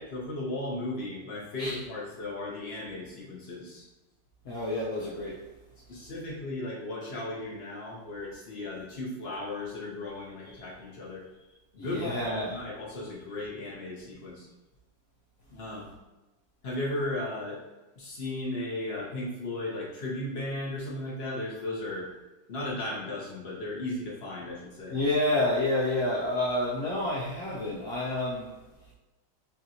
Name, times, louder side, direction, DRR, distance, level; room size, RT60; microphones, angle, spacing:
voice 1, 0.1-3.9 5.9-11.2 11.7-12.2 12.5-14.5 15.5-15.9 16.6-17.6 18.0-22.1 22.5-25.0, left 2 dB, 40° left, -4 dB, 1.2 m, -36 dB
voice 2, 4.5-5.4 11.8-12.6 24.9-28.5, left 1 dB, 60° left, -6 dB, 0.8 m, -29 dB
6.5 x 2.6 x 2.9 m, 1.1 s
omnidirectional pair, 2.1 m